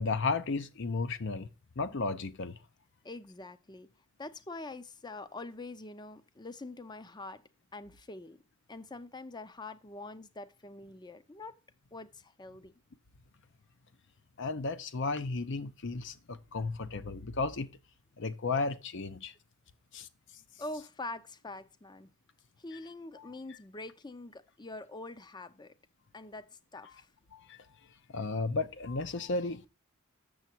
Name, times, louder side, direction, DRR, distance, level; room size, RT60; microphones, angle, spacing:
voice 1, 0.0-1.5 1.8-2.6 14.4-17.7 18.2-19.3 19.9-20.1 23.2-23.3 27.3-27.6 28.1-29.7, left 3 dB, 60° left, 0.7 m, -34 dB
voice 2, 3.0-3.9 4.2-7.4 7.7-8.4 8.7-11.5 11.9-12.7 20.6-22.1 22.6-25.7 26.1-27.1, left 2 dB, 20° left, 0.6 m, -44 dB
7.8 x 6.8 x 4.4 m
head